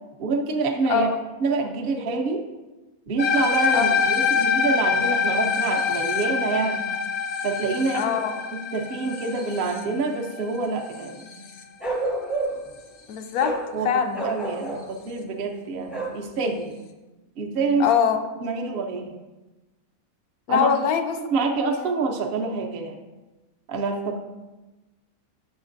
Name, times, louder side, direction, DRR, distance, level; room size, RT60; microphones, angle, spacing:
voice 1, 0.2-1.1 1.4-2.4 3.1-6.8 7.4-8.2 8.5-11.4 13.7-16.8 17.4-17.9 18.4-19.1 20.5-20.7 21.2-23.0 23.7-24.2, right 4 dB, 50° right, 2 dB, 0.8 m, -27 dB
voice 2, 0.9-1.2 3.7-4.0 7.9-8.3 13.1-14.2 17.8-18.2 20.5-21.1 21.7-21.9, left 7 dB, 90° left, 7 dB, 1.1 m, -23 dB
sound 1, 3.2-11.6, left 6 dB, 60° left, 0.7 m, -25 dB
Bark, 11.8-12.7 13.4-13.7 14.1-14.9 15.9-16.2, right 2 dB, ahead, 0.5 m, -28 dB
7.0 x 5.7 x 2.6 m, 1.1 s
omnidirectional pair, 1.5 m